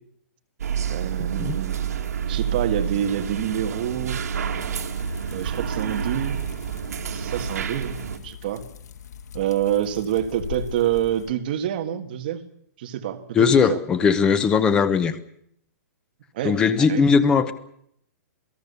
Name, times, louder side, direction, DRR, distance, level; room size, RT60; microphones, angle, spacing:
sound 1, 0.6-8.2, right 7 dB, 75° right, 2.9 m, -29 dB
voice 1, 0.9-1.8 2.3-4.2 5.3-6.4 7.1-8.6 9.3-12.4 12.8-13.8 16.3-17.0, right 11 dB, 35° right, 6 dB, 1.7 m, -27 dB
sound 2, 4.7-11.3, left 7 dB, 80° left, 2.5 m, -40 dB
voice 2, 13.3-15.1 16.4-17.5, left 6 dB, 10° left, 14 dB, 0.9 m, -19 dB
28.0 x 17.5 x 6.9 m, 0.71 s
hypercardioid pair, 180°, 9 cm